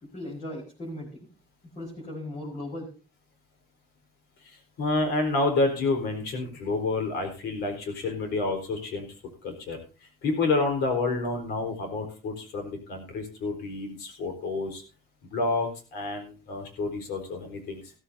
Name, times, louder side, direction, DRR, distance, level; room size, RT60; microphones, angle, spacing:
voice 1, 0.1-1.3 1.7-2.9, left 1 dB, 45° left, -4 dB, 5.1 m, -37 dB
voice 2, 4.4-9.1 9.4-9.8 10.2-14.8 15.2-17.9, left 3 dB, 80° left, 5 dB, 4.3 m, -29 dB
15.5 x 14.0 x 2.7 m, 0.34 s
cardioid pair, 110°, 17 cm